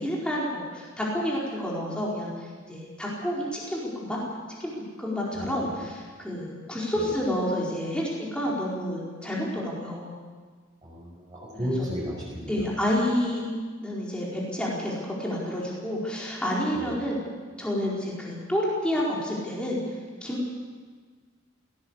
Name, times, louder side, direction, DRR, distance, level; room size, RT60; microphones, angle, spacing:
voice 1, 0.0-2.3 2.7-4.2 4.6-4.7 5.0-10.1 11.5-11.7 12.5-13.5 13.8-17.2 17.6-19.8 20.2-20.5, equal, 5° left, -5 dB, 4.6 m, -29 dB
voice 2, 5.3-5.8 6.9-7.1 10.8-12.7 16.7-16.9, equal, 20° right, -8 dB, 6.0 m, -34 dB
18.5 x 17.5 x 8.3 m, 1.5 s
head